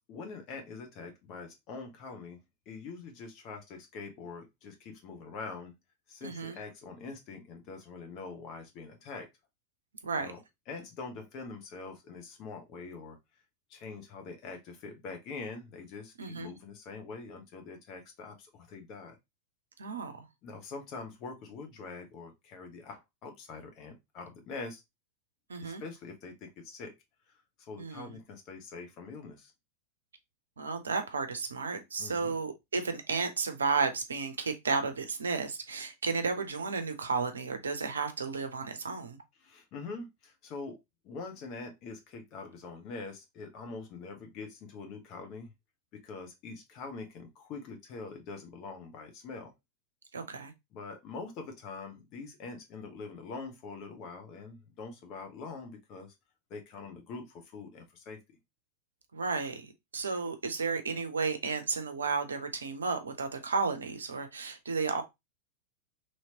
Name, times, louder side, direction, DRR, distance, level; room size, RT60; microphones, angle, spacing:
voice 1, 0.1-2.4 2.7-5.7 6.1-9.3 10.2-10.4 10.7-13.2 13.7-19.2 20.4-24.8 25.6-26.9 27.6-29.5 32.0-32.4 39.4-40.8 41.0-45.5 45.9-49.5 50.7-56.1 56.5-58.2, left 4 dB, 40° left, 0.9 m, -44 dB
voice 2, 6.2-6.6 10.0-10.3 16.2-16.5 19.8-20.2 25.5-25.8 27.8-28.1 30.6-39.2 50.1-50.5 59.1-65.0, right 4 dB, 70° right, 0.6 m, -33 dB
3.1 x 2.9 x 2.8 m
figure-of-eight pair, 90°, 0 cm